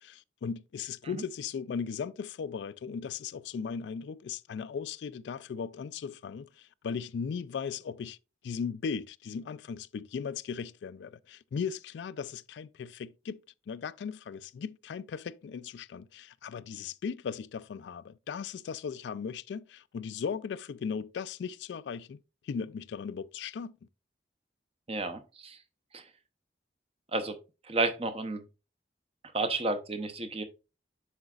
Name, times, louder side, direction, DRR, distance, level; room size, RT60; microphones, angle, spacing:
voice 1, 0.0-8.2 8.4-13.4 13.7-23.7, left 6 dB, 70° left, 0.3 m, -37 dB
voice 2, 24.9-25.6 25.9-26.0 27.1-27.4 27.6-28.4 29.3-30.4, right 3 dB, 30° right, 0.7 m, -31 dB
7.8 x 5.8 x 2.4 m
head